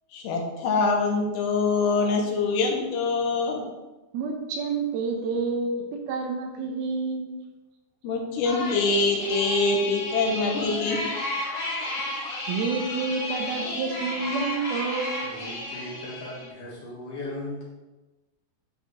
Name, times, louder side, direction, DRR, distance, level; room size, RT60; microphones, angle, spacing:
voice 1, 0.1-3.7 8.0-11.1, left 3 dB, 80° left, 1 dB, 3.2 m, -24 dB
voice 2, 4.1-7.4 12.5-15.5, right 4 dB, 75° right, 3 dB, 2.3 m, -29 dB
sound 1, 8.4-16.5, left 1 dB, 40° left, 2.6 m, -32 dB
voice 3, 15.2-17.6, left 1 dB, 55° left, -4 dB, 3.0 m, -37 dB
11.0 x 4.9 x 3.5 m, 1.1 s
omnidirectional pair, 5.0 m